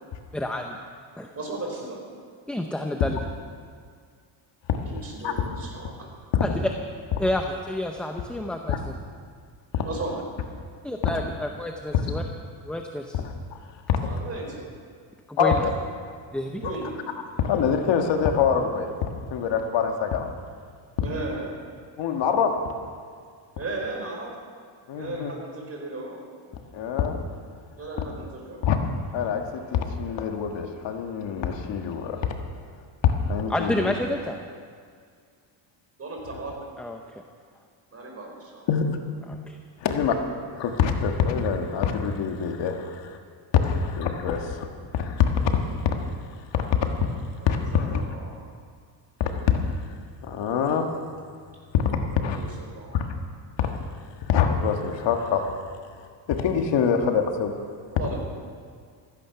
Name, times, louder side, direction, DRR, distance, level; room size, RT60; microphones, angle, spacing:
voice 1, 0.3-0.8 1.2-1.3 2.5-3.2 6.4-6.5 7.2-8.7 10.8-12.2 12.7-13.2 15.3-15.5 16.3-16.6 33.5-34.4 36.8-37.2 39.3-39.6, left 1 dB, ahead, 3 dB, 0.7 m, -29 dB
voice 2, 1.3-2.0 4.9-6.1 9.8-10.2 14.0-14.7 16.6-16.9 21.0-21.5 23.6-24.3 24.9-26.2 27.8-28.6 36.0-36.5 37.9-38.7 47.4-47.5 47.9-48.5 52.1-53.1 57.9-58.2, right 2 dB, 30° right, 0 dB, 4.1 m, -35 dB
voice 3, 5.2-5.6 6.3-6.4 8.7-8.8 9.7-9.8 13.2-13.3 13.9-14.1 15.4-15.7 16.6-16.7 17.4-18.9 19.3-20.3 22.0-22.6 24.9-25.3 26.7-27.2 28.6-28.8 29.1-32.2 33.0-33.9 38.7-39.0 39.8-40.2 40.5-43.2 43.5-44.7 44.9-45.6 46.5-47.1 47.5-48.1 49.2-49.5 50.2-51.0 51.7-51.8 52.2-52.4 52.9-53.1 53.6-53.7 54.3-55.6 56.3-57.5, left 7 dB, 70° left, 4 dB, 1.6 m, -24 dB
15.5 x 14.5 x 5.8 m, 2.1 s
cardioid pair, 135°, 45 cm